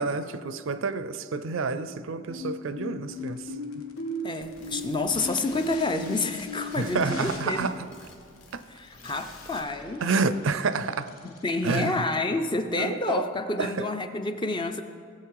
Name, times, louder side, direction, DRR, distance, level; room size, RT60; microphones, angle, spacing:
voice 1, 0.0-3.4 6.8-7.7 8.5-8.6 10.0-11.1 11.6-12.0 12.8-13.3 13.6-13.9, right 4 dB, 65° right, 13 dB, 0.5 m, -29 dB
sound 1, 2.3-7.4, equal, 90° left, 3.2 m, -36 dB
sound 2, 3.1-12.7, left 4 dB, 75° left, 1.2 m, -49 dB
voice 2, 4.2-7.6 8.7-10.0 11.2-14.8, left 3 dB, 20° left, 8 dB, 0.5 m, -29 dB
sound 3, 4.4-9.6, left 2 dB, 55° left, 2.2 m, -54 dB
18.0 x 7.7 x 4.8 m, 2.2 s
head